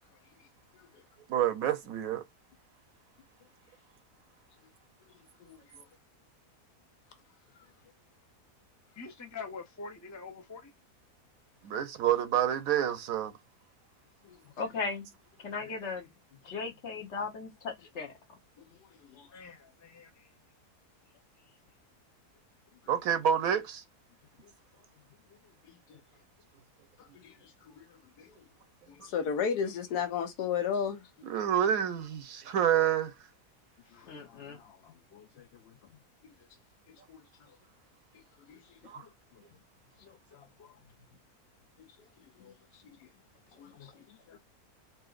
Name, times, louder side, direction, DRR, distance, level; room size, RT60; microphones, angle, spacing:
voice 1, 1.3-2.2 11.6-13.3 22.9-23.8 31.3-33.1 38.8-39.0, right 9 dB, 70° right, 1.0 m, -28 dB
voice 2, 5.5-5.8 14.3-14.4 19.1-19.3 25.7-25.8 27.1-27.8 28.2-28.3 28.9-31.1 37.1-37.2 38.5-38.6 42.4-42.5 43.6-43.9 44.3-44.4, left 7 dB, 90° left, 1.3 m, -34 dB
voice 3, 9.0-10.7 15.6-15.9 19.3-20.3 33.9-34.2, left 4 dB, 20° left, 0.4 m, -45 dB
voice 4, 14.6-15.0 15.4-16.1 16.4-18.1 34.1-34.6, left 4 dB, 55° left, 1.0 m, -37 dB
voice 5, 33.9-36.0 39.0-39.4 40.0-40.8 43.8-43.9, left 9 dB, 70° left, 0.6 m, -58 dB
5.6 x 2.6 x 2.4 m
omnidirectional pair, 1.6 m